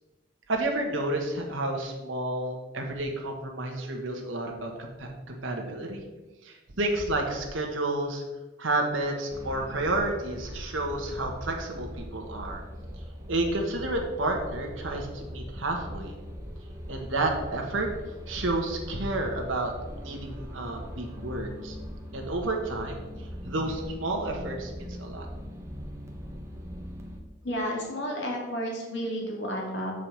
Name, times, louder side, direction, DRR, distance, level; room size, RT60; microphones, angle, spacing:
voice 1, 0.5-6.0 6.4-8.2 8.6-12.6 13.3-16.2 16.9-17.9 18.3-21.8 22.1-25.3, right 2 dB, 80° right, 1 dB, 1.4 m, -31 dB
sound 1, 9.3-27.2, equal, 15° right, 1.0 m, -41 dB
voice 2, 27.4-29.9, equal, 60° left, -1 dB, 2.2 m, -31 dB
6.6 x 4.9 x 5.9 m, 1.1 s
head